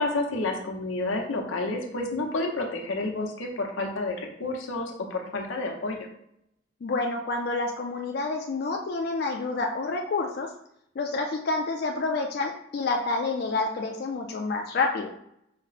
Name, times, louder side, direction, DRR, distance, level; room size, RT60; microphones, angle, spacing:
voice 1, 0.0-6.1, left 2 dB, 90° left, 2 dB, 0.8 m, -30 dB
voice 2, 6.8-10.5 11.0-15.1, left 3 dB, 50° left, 2 dB, 0.4 m, -28 dB
5.0 x 2.0 x 4.0 m, 0.75 s
head